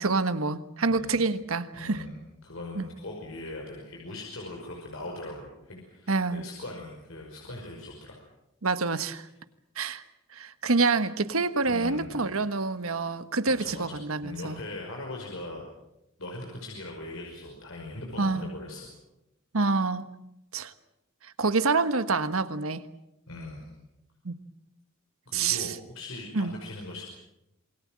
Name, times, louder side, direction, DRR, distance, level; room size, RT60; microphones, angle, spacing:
voice 1, 0.0-2.0 2.7-2.8 6.1-6.4 8.6-9.3 9.8-10.0 10.3-14.6 18.2-18.4 19.5-20.1 20.5-20.7 21.2-22.8 24.2-24.4 25.3-25.7 26.3-26.5, right 3 dB, 80° right, 11 dB, 1.4 m, -27 dB
voice 2, 0.9-1.2 1.7-2.1 2.4-8.2 11.7-12.2 13.5-15.6 16.2-18.9 23.3-23.7 25.3-27.0, left 2 dB, 70° left, 0 dB, 5.5 m, -40 dB
27.5 x 21.5 x 7.6 m, 0.87 s
head